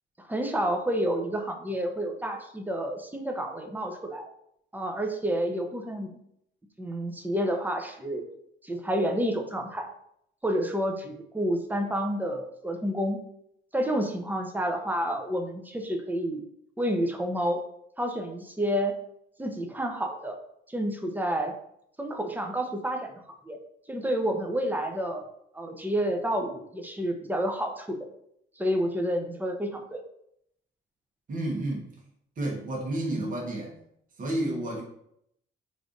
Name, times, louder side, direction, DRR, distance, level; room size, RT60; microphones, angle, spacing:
voice 1, 0.2-4.3 4.7-6.1 6.8-8.2 8.6-9.9 10.4-13.2 13.7-16.4 16.8-17.6 18.0-18.9 19.4-20.4 20.7-21.5 22.0-23.1 23.4-23.6 23.9-25.2 25.5-28.0 28.6-30.0, equal, 10° right, 4 dB, 0.6 m, -29 dB
voice 2, 31.3-31.9 32.4-33.7 34.2-34.8, right 1 dB, 45° right, -2 dB, 1.1 m, -30 dB
3.2 x 2.6 x 3.7 m, 0.74 s
cardioid pair, 90°, 20 cm